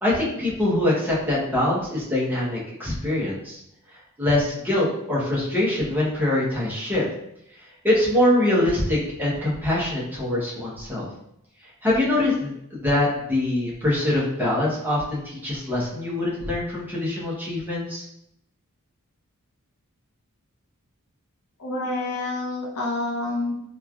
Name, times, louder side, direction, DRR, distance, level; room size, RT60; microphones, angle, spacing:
voice 1, 0.0-3.6 3.9-7.0 7.8-11.1 11.8-18.0, left 1 dB, 10° right, -6 dB, 0.7 m, -24 dB
voice 2, 21.6-23.5, left 2 dB, 70° left, -1 dB, 0.6 m, -28 dB
3.1 x 2.4 x 2.2 m, 0.76 s
head